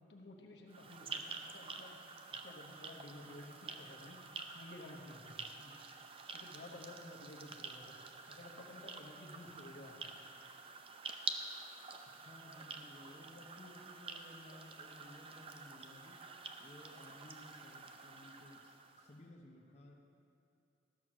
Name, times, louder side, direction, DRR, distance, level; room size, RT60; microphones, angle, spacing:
voice 1, 0.1-1.9 2.3-4.2 4.5-5.5 6.3-10.2, left 1 dB, 75° left, 1 dB, 1.2 m, -53 dB
sound 1, 0.7-19.2, right 4 dB, 30° right, 0.5 m, -48 dB
voice 2, 12.1-16.2 16.6-19.9, left 1 dB, 35° left, -1 dB, 0.8 m, -57 dB
13.0 x 6.3 x 6.1 m, 2.6 s
head